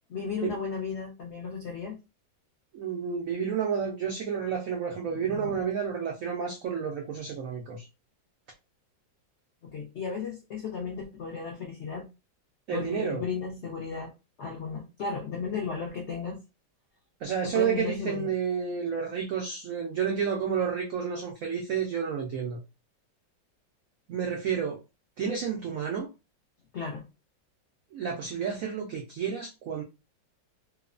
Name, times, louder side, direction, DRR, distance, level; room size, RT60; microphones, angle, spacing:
voice 1, 0.1-2.0 5.1-5.6 9.6-12.0 12.7-14.1 14.4-16.4 17.4-18.3 26.7-27.0, left 5 dB, 80° left, 0 dB, 0.6 m, -35 dB
voice 2, 2.7-7.9 12.7-13.2 17.2-22.6 24.1-24.8 25.2-26.1 27.9-29.8, right 7 dB, 85° right, 1 dB, 0.7 m, -30 dB
3.0 x 2.0 x 2.4 m, 0.27 s
omnidirectional pair, 2.0 m